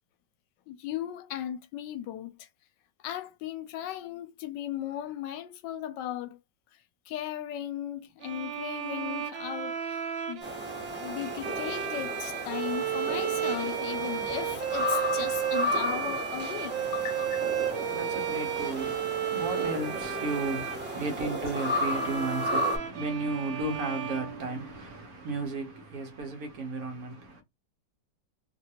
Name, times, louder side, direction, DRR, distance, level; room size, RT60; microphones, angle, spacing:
voice 1, 0.7-2.5 3.0-6.4 7.1-10.0 10.3-10.5 11.0-17.4 21.4-21.5, left 11 dB, 75° left, 1.2 m, -37 dB
sound 1, 8.2-25.1, right 10 dB, 90° right, 1.3 m, -34 dB
sound 2, 10.4-22.8, left 1 dB, 10° right, 0.7 m, -33 dB
voice 2, 16.6-17.0 17.6-27.4, right 2 dB, 60° right, 1.2 m, -34 dB
3.0 x 2.5 x 2.8 m
omnidirectional pair, 2.0 m